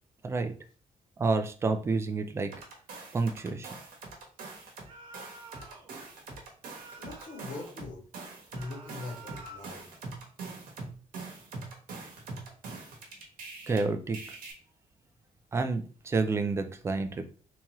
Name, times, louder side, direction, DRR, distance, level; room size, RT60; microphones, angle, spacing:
voice 1, 1.2-2.5 3.1-3.7 13.7-14.4 15.5-17.3, right 3 dB, 20° right, 8 dB, 0.3 m, -29 dB
sound 1, 2.5-4.9 5.1-13.8 14.1-14.5, right 3 dB, 75° right, 1.1 m, -43 dB
sound 2, 4.8-5.9 6.7-7.8 8.5-9.9, right 2 dB, 35° right, 0.9 m, -49 dB
voice 2, 7.0-8.0 8.5-9.8, left 3 dB, 70° left, -1 dB, 1.4 m, -42 dB
3.5 x 2.9 x 3.0 m, 0.41 s
cardioid pair, 180°, 14 cm